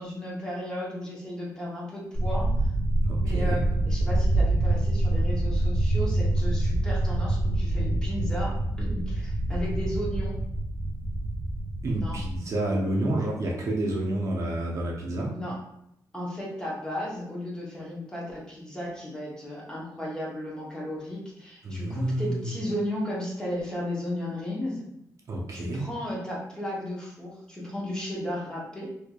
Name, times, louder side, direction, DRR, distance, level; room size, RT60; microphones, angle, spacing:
voice 1, 0.0-2.5 3.2-8.5 8.8-10.4 12.0-12.2 15.3-15.6 16.1-24.9 25.5-28.9, left 1 dB, 10° left, -5 dB, 0.8 m, -34 dB
sound 1, 2.1-12.4, right 1 dB, 50° left, 1.3 m, -26 dB
voice 2, 3.1-3.6 11.8-15.3 21.6-22.5 25.3-25.8, right 1 dB, 45° right, -2 dB, 0.6 m, -29 dB
4.4 x 2.6 x 2.3 m, 0.78 s
wide cardioid pair, 165°, 7 cm